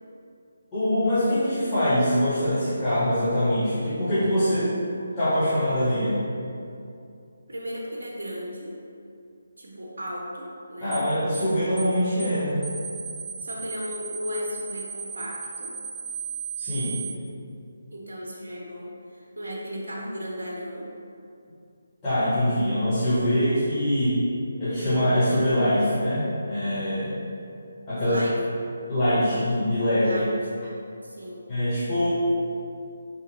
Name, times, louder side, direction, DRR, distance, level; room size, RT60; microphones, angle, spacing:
voice 1, 0.7-4.7 5.2-6.2 10.8-12.7 16.6-17.0 22.0-24.2 24.6-27.2 27.9-28.2 28.9-30.2 31.5-32.1, equal, 15° left, -17 dB, 0.9 m, -23 dB
voice 2, 7.5-8.8 9.6-11.0 13.4-15.7 17.9-20.9 28.0-28.4 30.0-30.3 30.6-30.7 31.0-31.4, equal, 60° right, -3 dB, 0.6 m, -35 dB
sound 1, 10.9-11.1 11.3-11.5 11.8-11.9 12.2-12.4 12.6-17.1, right 7 dB, ahead, 0.5 m, -35 dB
3.5 x 2.8 x 2.8 m, 2.5 s
figure-of-eight pair, 145°, 0 cm